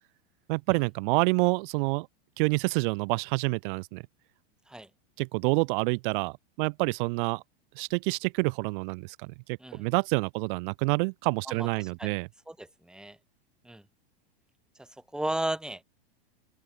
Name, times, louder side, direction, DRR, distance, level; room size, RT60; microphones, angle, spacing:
voice 1, 0.5-2.1 2.4-4.0 5.2-7.4 7.8-12.3, right 28 dB, 55° right, 2.5 m, -28 dB
voice 2, 11.5-12.2 12.5-13.2 13.6-13.8 14.8-15.8, right 1 dB, ahead, 2.6 m, -35 dB
open air
supercardioid pair, 130°, 31 cm